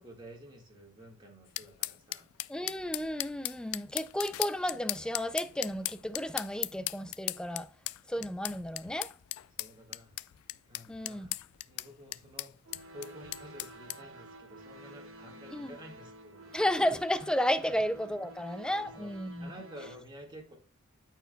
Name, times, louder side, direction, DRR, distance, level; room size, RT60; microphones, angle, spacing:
voice 1, 0.0-2.3 9.6-10.2 10.7-11.4 11.6-12.5 12.9-16.5 17.6-17.7 18.7-19.1 19.4-20.5, equal, 20° right, 1.8 m, -50 dB
sound 1, 1.6-14.0, left 18 dB, 85° left, 0.3 m, -38 dB
voice 2, 2.5-7.7 8.1-9.1 10.9-11.3 15.5-15.8 16.5-19.5, equal, 5° left, 0.3 m, -33 dB
sound 2, 12.6-20.0, right 1 dB, 75° right, 1.3 m, -51 dB
13.5 x 4.6 x 2.3 m
head